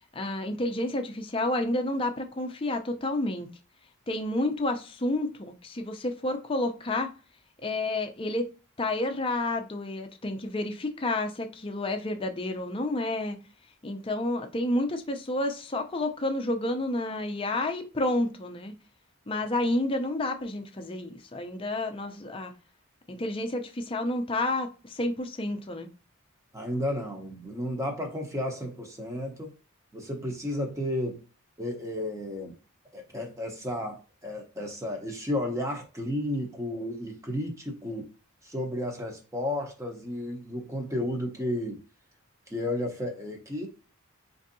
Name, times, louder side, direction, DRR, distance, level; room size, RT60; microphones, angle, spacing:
voice 1, 0.1-3.5 4.1-7.1 7.6-8.5 8.8-13.4 13.8-18.7 19.3-22.5 23.1-25.9, left 1 dB, 25° left, 0.5 m, -30 dB
voice 2, 26.5-29.5 29.9-31.2 31.6-32.5 32.9-38.1 38.4-41.8 42.5-43.7, left 1 dB, 15° right, 0.7 m, -32 dB
4.4 x 2.7 x 2.6 m
head